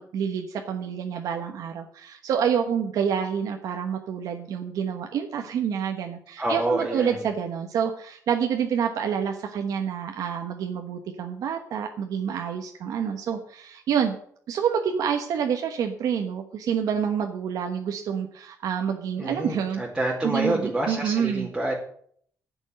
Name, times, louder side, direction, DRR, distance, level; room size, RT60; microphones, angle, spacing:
voice 1, 0.0-14.2 14.5-19.8 20.2-21.5, right 7 dB, 85° right, 3 dB, 1.2 m, -28 dB
voice 2, 6.4-7.2 19.2-21.7, right 1 dB, 10° right, -5 dB, 2.5 m, -27 dB
10.5 x 6.3 x 9.1 m, 0.62 s
cardioid pair, 135°, 6 cm